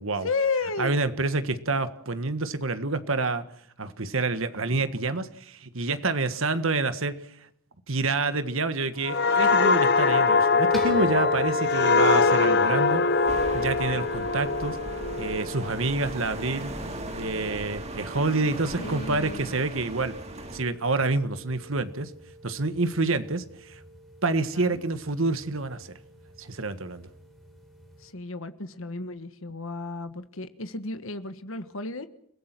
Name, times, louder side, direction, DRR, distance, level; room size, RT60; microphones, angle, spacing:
voice 1, 0.2-1.1 18.8-19.5 24.5-24.8 28.0-32.1, left 3 dB, 65° left, 11 dB, 1.4 m, -33 dB
voice 2, 0.8-3.4 3.8-7.2 7.9-13.0 13.5-14.8 15.2-16.7 17.1-20.1 20.5-22.1 22.4-23.8 24.2-25.9 26.4-27.1, right 3 dB, 65° right, 11 dB, 1.6 m, -28 dB
sound 1, 9.0-16.5 16.9-17.2, left 4 dB, 45° left, 0.9 m, -23 dB
sound 2, 10.7-28.1, right 1 dB, ahead, 4.1 m, -39 dB
sound 3, 13.3-20.6, right 1 dB, 30° right, 2.8 m, -38 dB
29.5 x 17.5 x 6.1 m, 0.69 s
head